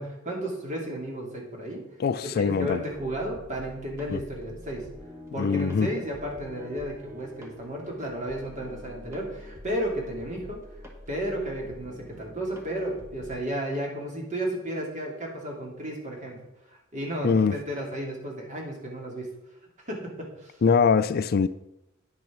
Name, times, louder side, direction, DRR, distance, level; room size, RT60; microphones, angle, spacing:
voice 1, 0.0-1.8 2.2-4.8 5.3-10.6 11.1-16.4 16.7-19.3 19.8-20.6, right 1 dB, 35° right, 2.6 m, -33 dB
voice 2, 2.0-2.8 4.1-4.2 5.4-5.9 17.2-17.5 20.6-21.5, left 5 dB, 50° left, 0.4 m, -22 dB
sound 1, 2.9-13.4, left 1 dB, 15° right, 1.7 m, -46 dB
9.9 x 6.2 x 6.0 m
head